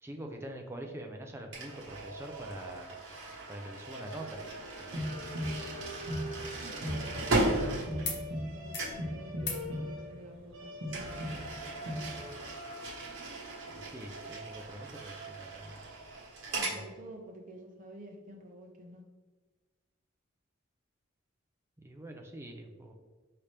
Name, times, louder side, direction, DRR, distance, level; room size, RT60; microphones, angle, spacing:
voice 1, 0.0-3.0 3.5-4.5 4.8-5.0 13.7-15.8 16.7-16.8 21.8-22.9, right 1 dB, 10° right, 2 dB, 0.4 m, -44 dB
sound 1, 1.5-8.5 8.8-9.1 10.9-16.8, right 2 dB, 60° right, 1.3 m, -37 dB
sound 2, 4.8-12.3, equal, 90° right, 1.1 m, -39 dB
voice 2, 6.6-11.4 16.4-19.0, right 1 dB, 40° right, 0 dB, 0.7 m, -49 dB
sound 3, 8.0-8.2 8.5-8.9 9.4-9.7 11.0-11.1, left 4 dB, 55° left, 0.8 m, -42 dB
5.0 x 2.9 x 3.3 m, 1.3 s
head